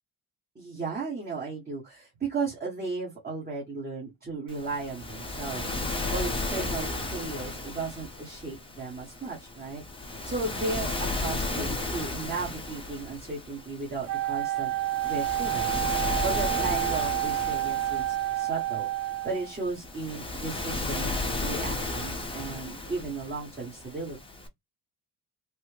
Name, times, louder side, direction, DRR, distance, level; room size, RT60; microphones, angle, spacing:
voice 1, 0.5-5.7 6.1-9.8 10.2-14.7 15.0-15.8 16.2-24.2, right 3 dB, 25° right, 1.2 m, -35 dB
Waves surf, 4.5-24.5, left 2 dB, 15° left, 0.7 m, -34 dB
Wind instrument woodwind instrument, 14.1-19.5, right 15 dB, 40° right, 0.4 m, -29 dB
3.2 x 2.0 x 3.1 m
cardioid pair, 130°, 41 cm